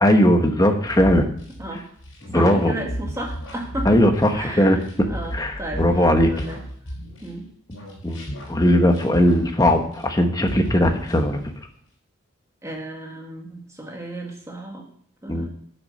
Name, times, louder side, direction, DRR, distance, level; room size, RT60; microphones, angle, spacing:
voice 1, 0.0-1.2 2.3-2.7 3.8-4.8 5.3-6.3 8.0-11.4 15.3-15.5, equal, 15° left, 5 dB, 1.0 m, -18 dB
sound 1, 0.9-7.4 7.7-10.2 10.5-11.5, equal, 75° left, 4.6 m, -35 dB
voice 2, 2.3-4.0 4.3-6.6 7.2-7.5 12.6-14.9 15.2-15.5, right 1 dB, 15° right, 0 dB, 1.8 m, -34 dB
11.0 x 6.0 x 6.6 m, 0.62 s
head